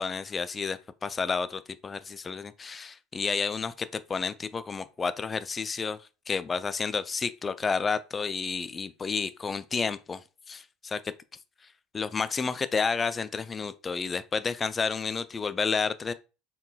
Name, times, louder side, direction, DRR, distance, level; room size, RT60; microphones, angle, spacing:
voice 1, 0.0-6.0 6.3-10.2 10.5-10.6 10.9-11.0 11.9-16.1, left 5 dB, 25° left, 0.3 m, -30 dB
3.9 x 3.7 x 2.2 m
figure-of-eight pair, 65°, 0 cm